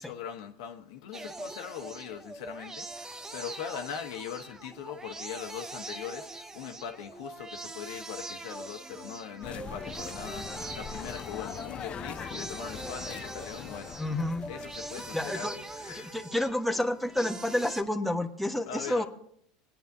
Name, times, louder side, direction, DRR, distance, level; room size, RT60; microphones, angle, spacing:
voice 1, 0.0-16.2 18.7-19.0, left 8 dB, 75° left, 1.2 m, -41 dB
sound 1, 1.1-17.8, right 2 dB, 15° right, 0.7 m, -42 dB
sound 2, 9.4-16.1, left 8 dB, 35° left, 0.4 m, -42 dB
voice 2, 14.0-14.4 14.8-14.9 15.1-15.6 15.9-19.0, left 1 dB, ahead, 1.1 m, -30 dB
22.5 x 9.1 x 2.7 m
hypercardioid pair, 90°, 3 cm